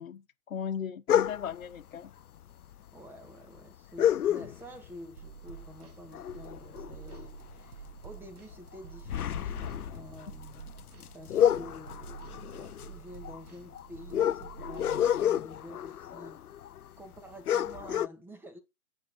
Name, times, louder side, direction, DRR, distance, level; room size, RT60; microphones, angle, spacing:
voice 1, 0.0-2.1, left 8 dB, 65° left, 1.3 m, -37 dB
sound 1, 1.1-1.6 2.6-2.7 3.0-3.1 4.0-4.9 5.3-5.5 5.9-7.5 7.9-8.1 8.5-16.9 17.2-17.3 17.5-18.1, left 10 dB, 85° left, 0.6 m, -30 dB
voice 2, 2.9-10.7 11.0-16.4 17.0-18.6, equal, 5° right, 1.9 m, -49 dB
sound 2, 5.2-15.4, right 7 dB, 80° right, 1.4 m, -49 dB
9.5 x 6.7 x 4.5 m
figure-of-eight pair, 130°, 43 cm